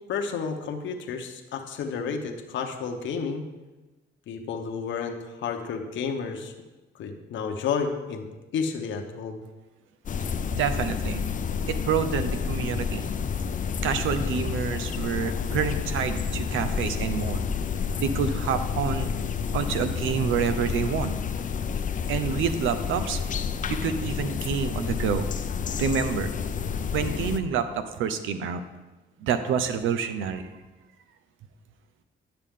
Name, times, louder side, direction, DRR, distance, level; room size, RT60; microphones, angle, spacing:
voice 1, 0.1-3.5 4.3-6.5 7.0-8.3 8.5-9.4, left 5 dB, 70° left, 4 dB, 1.0 m, -31 dB
sound 1, 10.1-27.4, left 6 dB, 40° left, 0.5 m, -29 dB
voice 2, 10.5-11.2 11.7-13.1 13.8-17.4 18.0-19.1 19.5-21.1 22.1-23.2 23.7-25.3 25.8-26.3 26.9-28.6 29.2-30.5, right 7 dB, 85° right, 10 dB, 0.7 m, -28 dB
10.5 x 6.7 x 3.7 m, 1.2 s
cardioid pair, 90°, 20 cm